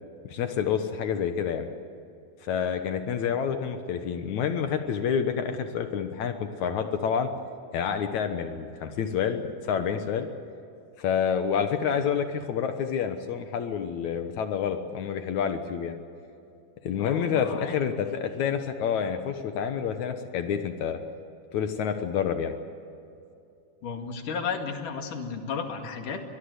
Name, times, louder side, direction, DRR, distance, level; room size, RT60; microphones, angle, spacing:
voice 1, 0.2-1.7 2.5-7.3 7.7-10.3 11.0-16.0 16.8-21.0 21.5-22.6, left 7 dB, 70° left, 7 dB, 2.4 m, -28 dB
voice 2, 17.0-17.8 23.8-26.2, left 5 dB, 90° left, 4 dB, 3.7 m, -33 dB
23.0 x 21.0 x 8.1 m, 2.6 s
omnidirectional pair, 3.6 m